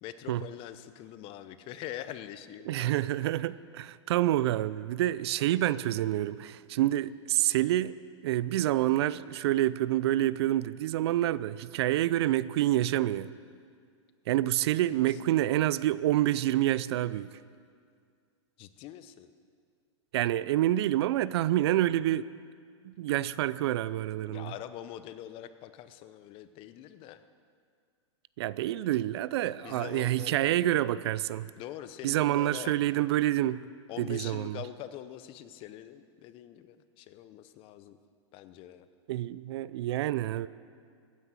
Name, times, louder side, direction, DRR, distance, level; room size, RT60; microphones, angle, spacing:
voice 1, 0.0-3.0 3.3-3.4 14.9-15.2 18.6-19.3 24.3-27.2 29.6-30.6 31.6-32.7 33.9-38.0 38.3-38.9, left 12 dB, 35° left, 12 dB, 0.8 m, -44 dB
voice 2, 2.7-7.9 8.2-13.3 14.3-17.4 20.1-22.3 22.8-24.5 28.4-31.5 32.0-33.7 34.0-34.6 39.1-40.5, right 14 dB, 60° right, 18 dB, 0.5 m, -27 dB
16.0 x 9.8 x 7.3 m, 2.1 s
hypercardioid pair, 125°, 16 cm